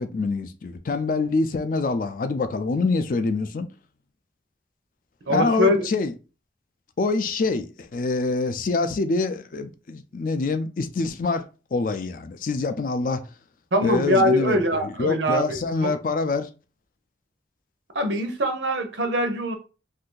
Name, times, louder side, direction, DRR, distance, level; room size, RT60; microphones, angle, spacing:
voice 1, 0.0-3.7 5.3-6.1 7.0-11.4 11.7-13.2 13.8-16.5, left 3 dB, 45° left, 0.4 m, -25 dB
voice 2, 5.3-5.9 13.7-15.9 17.9-19.5, equal, 80° right, 0.7 m, -23 dB
2.6 x 2.5 x 3.7 m
head